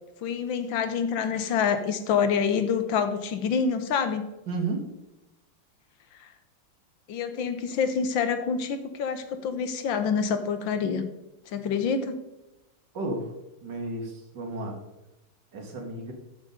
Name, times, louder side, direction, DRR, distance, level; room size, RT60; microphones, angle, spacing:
voice 1, 0.2-4.3 6.2-6.3 7.1-11.1 11.5-12.2, left 6 dB, 70° left, 9 dB, 1.5 m, -27 dB
voice 2, 4.5-4.9 12.9-13.3 13.6-14.8 15.5-16.1, right 2 dB, 55° right, 2 dB, 2.2 m, -32 dB
13.0 x 5.2 x 5.0 m, 0.97 s
omnidirectional pair, 2.3 m